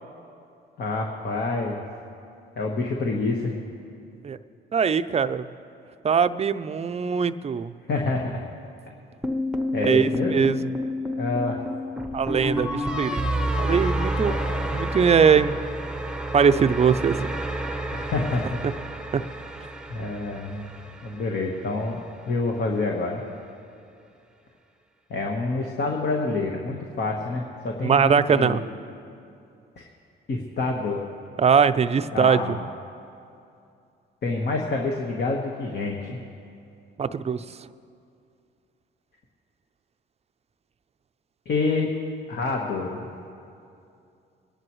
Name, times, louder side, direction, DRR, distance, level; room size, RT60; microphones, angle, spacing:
voice 1, 0.8-1.8 2.6-3.6 7.9-8.4 9.7-10.4 11.2-11.6 14.2-14.8 17.9-18.6 19.9-23.2 25.1-28.6 29.8-29.9 30.3-31.0 32.1-32.6 34.2-36.2 41.4-41.9 42.3-43.1, left 3 dB, 55° left, 0 dB, 1.4 m, -27 dB
voice 2, 4.7-5.5 6.0-7.7 9.8-10.6 12.1-13.2 13.6-14.4 14.7-15.6 16.3-17.3 19.1-19.2 27.8-28.6 31.4-32.6 37.0-37.4, right 6 dB, 30° right, 12 dB, 0.5 m, -21 dB
sound 1, 9.2-21.4, equal, 5° right, 0.8 m, -29 dB
25.0 x 10.5 x 3.2 m, 2.6 s
cardioid pair, 90°, 20 cm